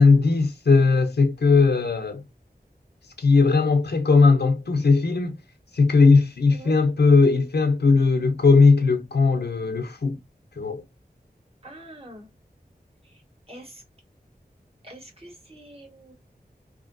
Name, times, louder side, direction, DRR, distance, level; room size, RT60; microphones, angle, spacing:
voice 1, 0.0-2.2 3.2-5.4 5.7-10.2 10.6-10.8, left 4 dB, 85° left, 0.7 m, -18 dB
voice 2, 11.6-12.3 13.0-13.2 13.5-13.8 14.8-16.1, right 1 dB, 35° right, 1.6 m, -45 dB
2.9 x 2.7 x 2.6 m
wide cardioid pair, 55°, 17 cm